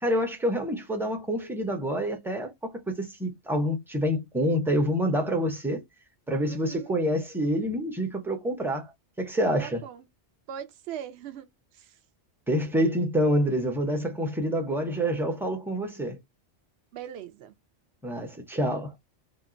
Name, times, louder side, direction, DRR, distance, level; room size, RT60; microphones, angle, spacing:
voice 1, 0.0-5.8 6.3-9.8 12.5-16.2 18.0-18.9, equal, 5° right, 0.5 m, -27 dB
voice 2, 6.5-7.0 9.6-10.1 10.5-11.5 11.7-12.0 16.9-17.5, right 10 dB, 70° right, 0.8 m, -40 dB
2.9 x 2.2 x 3.7 m
omnidirectional pair, 1.2 m